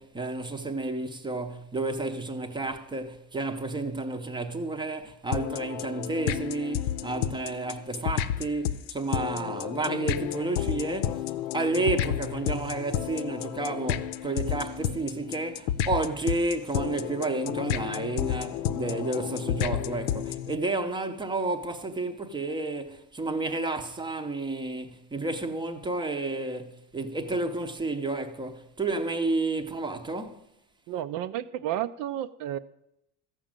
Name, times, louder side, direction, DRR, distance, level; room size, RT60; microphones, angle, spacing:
voice 1, 0.0-30.4, right 2 dB, 10° right, 0.7 m, -31 dB
sound 1, 5.3-20.5, left 11 dB, 75° left, 0.8 m, -31 dB
voice 2, 30.9-32.6, right 12 dB, 50° right, 0.5 m, -31 dB
14.0 x 6.2 x 8.9 m
cardioid pair, 165°, 43 cm